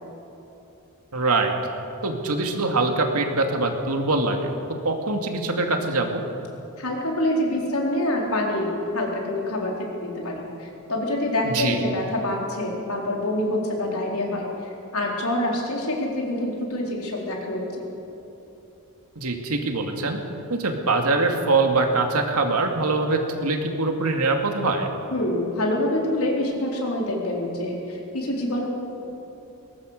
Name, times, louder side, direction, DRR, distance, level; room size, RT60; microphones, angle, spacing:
voice 1, 1.1-1.5 2.0-4.5 4.8-6.2 11.4-11.8 19.2-20.2 20.5-24.9, right 3 dB, 90° right, 3 dB, 2.4 m, -23 dB
voice 2, 6.8-17.8 25.1-28.7, left 1 dB, 80° left, -1 dB, 4.3 m, -26 dB
21.5 x 19.0 x 6.6 m, 3.0 s
head